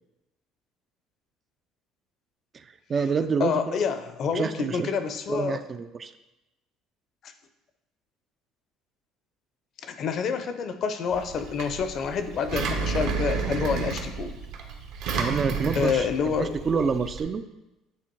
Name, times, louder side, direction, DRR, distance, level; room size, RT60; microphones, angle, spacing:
voice 1, 2.5-3.8 4.3-4.9 5.3-6.1 15.1-17.4, right 5 dB, 30° right, 11 dB, 0.3 m, -28 dB
voice 2, 3.4-5.6 7.2-7.3 9.8-14.4 15.7-16.9, left 6 dB, 50° left, 9 dB, 0.6 m, -28 dB
Engine, 11.1-17.2, right 5 dB, 70° right, 1.0 m, -31 dB
8.7 x 3.4 x 4.6 m, 0.98 s
cardioid pair, 125°, 0 cm